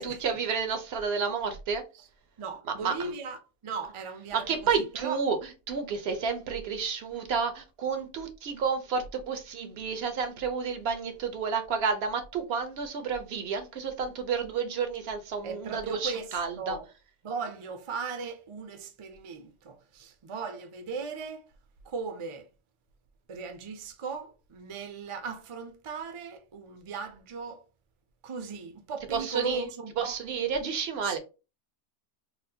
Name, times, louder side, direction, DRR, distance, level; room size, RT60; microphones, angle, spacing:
voice 1, 0.0-1.8 2.8-3.1 4.3-5.4 5.7-16.8 29.1-29.6 30.0-31.2, right 6 dB, 70° right, 0.8 m, -30 dB
voice 2, 2.4-4.7 5.0-5.2 15.4-16.9 17.2-21.5 21.8-22.5 23.3-27.7 28.2-30.2 31.0-31.2, right 5 dB, 40° right, 0.4 m, -38 dB
4.1 x 2.1 x 2.7 m
omnidirectional pair, 1.2 m